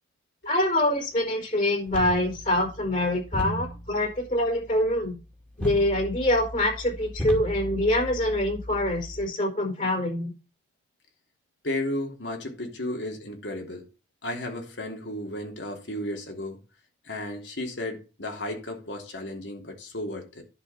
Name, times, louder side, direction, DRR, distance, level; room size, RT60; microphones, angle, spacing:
voice 1, 0.4-5.2 5.6-10.3, left 1 dB, 45° left, 4.9 m, -25 dB
sound 1, 1.9-9.3, equal, 10° left, 2.3 m, -36 dB
voice 2, 11.6-13.8 14.2-16.6 17.0-20.4, left 1 dB, 90° left, 3.2 m, -34 dB
11.0 x 5.1 x 6.2 m
head